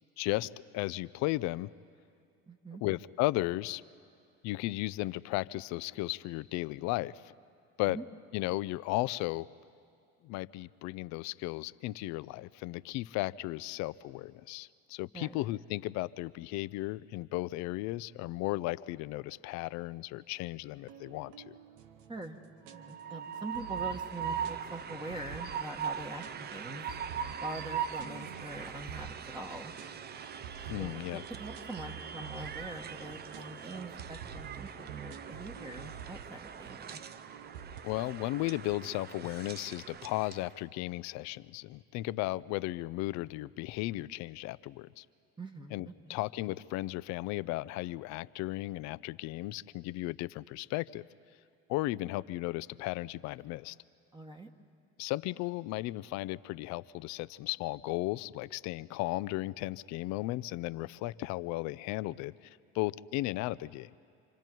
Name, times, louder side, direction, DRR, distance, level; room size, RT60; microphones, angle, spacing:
voice 1, 0.2-1.7 2.8-3.8 4.4-7.3 7.8-8.0 8.3-9.5 10.2-21.5 30.7-31.2 37.8-45.0 45.7-51.0 51.7-53.8 55.0-63.9, left 18 dB, 60° left, 17 dB, 0.5 m, -35 dB
voice 2, 2.5-2.8 7.9-8.0 15.1-15.4 22.1-22.4 22.7-26.9 27.4-29.7 30.8-37.0 45.4-46.2 54.1-54.5, right 2 dB, 15° right, 3 dB, 1.4 m, -44 dB
sound 1, 20.8-37.8, right 8 dB, 80° right, 1.0 m, -49 dB
Train, 22.7-40.5, right 7 dB, 30° right, 0.7 m, -41 dB
27.5 x 25.5 x 4.6 m, 2.5 s
supercardioid pair, 90°, 31 cm